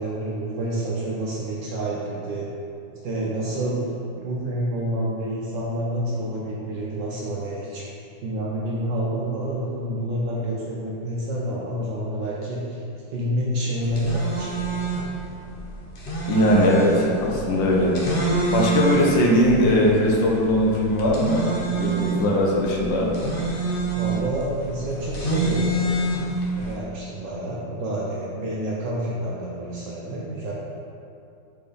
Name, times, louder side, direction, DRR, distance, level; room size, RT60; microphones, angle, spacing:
voice 1, 0.0-2.5 3.0-3.8 4.2-7.9 8.2-12.8 13.1-14.8 23.9-25.8 26.5-30.5, right 1 dB, 70° right, -5 dB, 1.4 m, -28 dB
sound 1, 13.8-26.7, right 3 dB, 40° left, 0.8 m, -27 dB
voice 2, 16.3-17.9 18.5-21.4 21.7-23.1, left 1 dB, 70° left, -2 dB, 1.6 m, -20 dB
5.6 x 4.3 x 5.3 m, 2.6 s
omnidirectional pair, 2.1 m